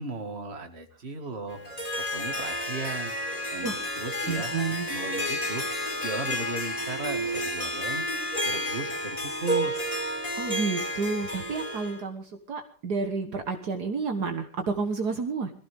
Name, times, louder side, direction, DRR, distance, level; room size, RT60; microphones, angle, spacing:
voice 1, 0.0-1.6 2.1-3.2 3.5-4.5 4.9-5.6 6.0-8.1 8.4-9.9, right 3 dB, 35° right, 5 dB, 2.4 m, -36 dB
Harp, 1.5-12.0, equal, 20° left, 3.7 m, -31 dB
voice 2, 3.6-4.0 4.3-4.9 10.4-15.5, right 4 dB, 65° right, 5 dB, 1.9 m, -30 dB
22.5 x 15.5 x 3.6 m, 0.42 s
omnidirectional pair, 1.9 m